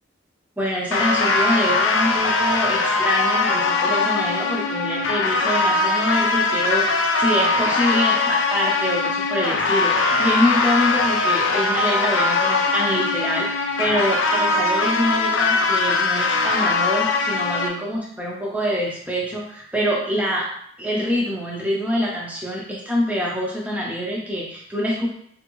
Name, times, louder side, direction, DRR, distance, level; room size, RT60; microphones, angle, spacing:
voice 1, 0.6-20.5 20.8-25.1, equal, 10° right, -3 dB, 0.5 m, -25 dB
sound 1, 0.9-17.7, left 3 dB, 90° left, 0.4 m, -21 dB
2.8 x 2.6 x 2.9 m, 0.66 s
head